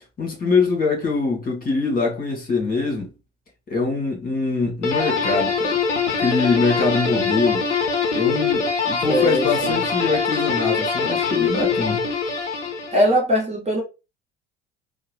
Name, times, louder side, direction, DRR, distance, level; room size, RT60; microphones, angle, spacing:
voice 1, 0.2-3.1 3.7-5.7 6.2-7.7 8.1-12.0, left 4 dB, 25° left, 1.6 m, -23 dB
sound 1, 4.8-13.2, left 5 dB, 85° left, 0.5 m, -23 dB
voice 2, 9.1-9.8 12.9-13.8, equal, 20° right, 1.0 m, -20 dB
3.6 x 2.0 x 3.2 m
figure-of-eight pair, 60°, 35 cm